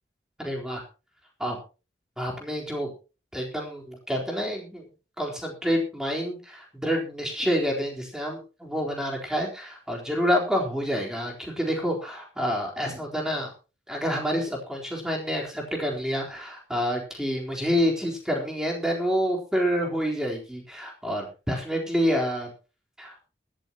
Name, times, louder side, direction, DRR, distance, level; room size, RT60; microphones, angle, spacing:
voice 1, 0.4-0.8 1.4-1.6 2.2-2.9 3.3-4.9 5.2-13.5 13.9-22.5 23.0-23.1, equal, 5° right, -1 dB, 3.9 m, -28 dB
19.5 x 12.5 x 3.0 m, 0.32 s
head